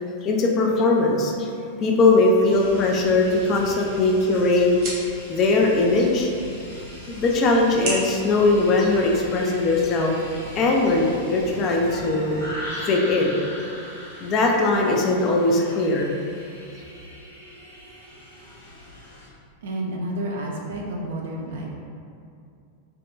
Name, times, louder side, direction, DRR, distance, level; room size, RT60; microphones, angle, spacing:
voice 1, 0.2-1.5 1.8-4.7 5.3-6.3 7.1-10.2 10.6-12.4 12.9-13.3 14.2-16.1, left 2 dB, 35° left, -1 dB, 0.3 m, -20 dB
sound 1, 2.5-19.3, left 1 dB, 85° left, 0.8 m, -40 dB
sound 2, 3.5-9.6, right 1 dB, 45° right, 0.8 m, -38 dB
voice 2, 19.6-21.7, right 1 dB, 60° right, -1 dB, 0.3 m, -30 dB
3.5 x 2.1 x 2.2 m, 2.5 s
figure-of-eight pair, 90°, 0 cm